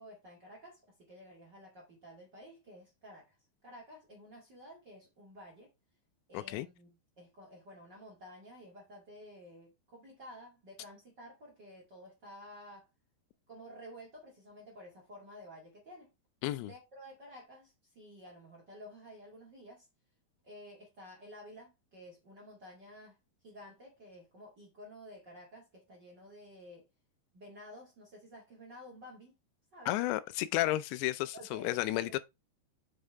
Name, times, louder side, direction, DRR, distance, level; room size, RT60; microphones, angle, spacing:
voice 1, 0.0-3.3 3.6-5.7 6.3-12.9 13.5-16.1 16.6-19.9 20.4-23.2 23.4-26.8 27.3-29.3 29.7-29.9 31.3-32.0, equal, 40° right, 1.6 m, -52 dB
voice 2, 6.3-6.7 16.4-16.7 29.9-32.2, left 16 dB, 85° left, 2.8 m, -32 dB
6.3 x 5.5 x 3.4 m
omnidirectional pair, 5.0 m